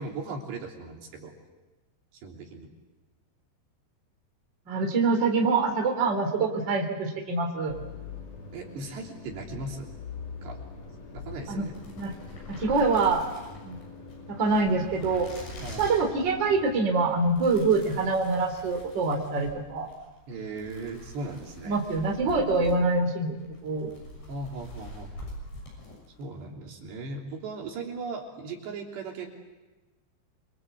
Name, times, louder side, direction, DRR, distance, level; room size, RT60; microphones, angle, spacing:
voice 1, 0.0-1.3 2.2-2.7 8.5-9.9 10.4-10.6 11.1-11.7 15.6-15.8 20.3-21.8 24.3-25.1 26.2-29.3, right 3 dB, 70° right, 0 dB, 5.4 m, -37 dB
voice 2, 4.7-7.8 11.5-11.7 12.0-12.1 12.5-13.3 13.6-13.8 14.3-15.3 15.8-19.9 21.7-23.4 23.6-23.9, right 3 dB, 25° right, 2 dB, 3.7 m, -25 dB
sound 1, 7.7-16.9, left 5 dB, 40° left, 3.5 m, -43 dB
sound 2, 11.4-26.3, left 1 dB, 70° left, 9.2 m, -45 dB
27.5 x 24.0 x 8.3 m, 1.1 s
omnidirectional pair, 5.2 m